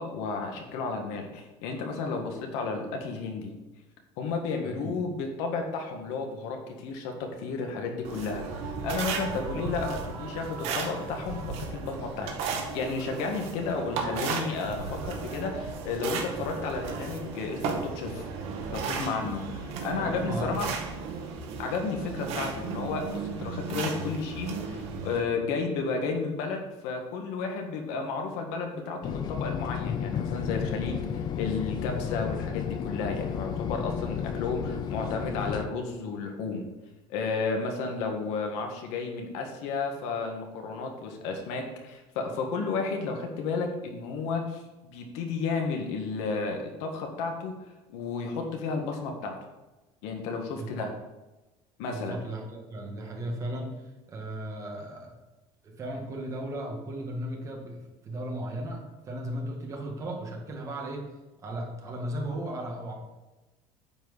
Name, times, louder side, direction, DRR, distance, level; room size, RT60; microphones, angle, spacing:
voice 1, 0.0-3.5 4.2-11.4 11.7-12.3 12.7-18.3 18.7-20.7 21.6-36.7 37.1-47.5 47.9-49.4 50.0-50.9 51.8-52.2, left 4 dB, 80° left, 3 dB, 1.8 m, -32 dB
voice 2, 4.6-5.0 9.3-9.6 16.4-16.5 19.9-20.6 50.5-50.9 51.9-55.1 55.6-61.1 61.4-62.9, right 1 dB, 30° right, 0 dB, 2.0 m, -36 dB
sound 1, 8.0-25.2, right 5 dB, 65° right, 1.6 m, -35 dB
sound 2, 29.0-35.7, left 8 dB, 40° left, 0.6 m, -32 dB
9.0 x 4.5 x 7.3 m, 1.1 s
cardioid pair, 155°, 11 cm